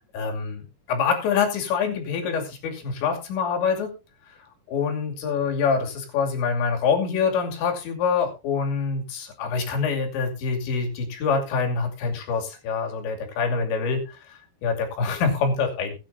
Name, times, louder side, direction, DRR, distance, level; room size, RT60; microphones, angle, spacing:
voice 1, 0.1-3.9 4.7-15.9, left 5 dB, 85° left, 3 dB, 4.9 m, -25 dB
21.5 x 9.1 x 2.7 m, 0.29 s
omnidirectional pair, 5.1 m